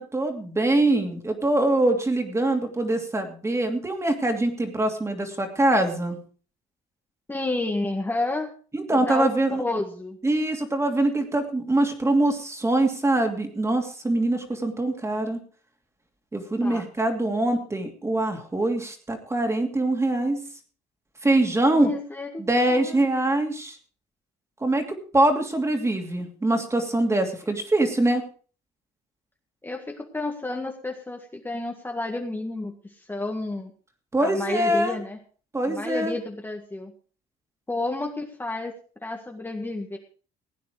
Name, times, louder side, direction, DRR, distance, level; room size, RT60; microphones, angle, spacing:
voice 1, 0.0-6.2 8.7-9.6 10.2-15.4 16.3-20.4 21.2-21.9 22.4-23.8 24.6-28.2 34.1-35.0 35.5-36.2, right 2 dB, 15° right, 5 dB, 2.8 m, -23 dB
voice 2, 7.3-8.5 8.9-10.2 16.6-16.9 21.7-23.0 29.6-33.7 34.2-35.2 35.6-36.9 37.7-38.7 39.0-40.0, left 2 dB, 10° left, 2 dB, 1.8 m, -31 dB
16.5 x 9.3 x 4.9 m, 0.40 s
cardioid pair, 110°, 17 cm